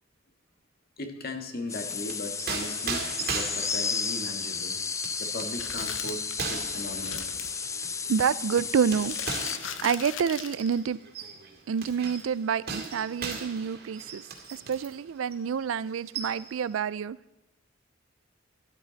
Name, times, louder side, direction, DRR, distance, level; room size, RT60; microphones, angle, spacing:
voice 1, 1.0-4.8 5.2-7.2, left 1 dB, 50° left, 5 dB, 1.7 m, -38 dB
sound 1, 1.7-9.6, left 5 dB, 15° left, 0.4 m, -33 dB
sound 2, 1.7-15.0 15.3-15.5 15.8-16.6, right 5 dB, 55° right, 2.3 m, -39 dB
sound 3, 5.5-7.6 9.0-10.8 11.8-11.9, left 8 dB, 75° left, 0.9 m, -39 dB
voice 2, 8.1-9.1 9.8-11.0 11.7-14.2 14.7-17.2, right 7 dB, 90° right, 19 dB, 0.4 m, -28 dB
13.0 x 12.0 x 4.0 m, 1.1 s
head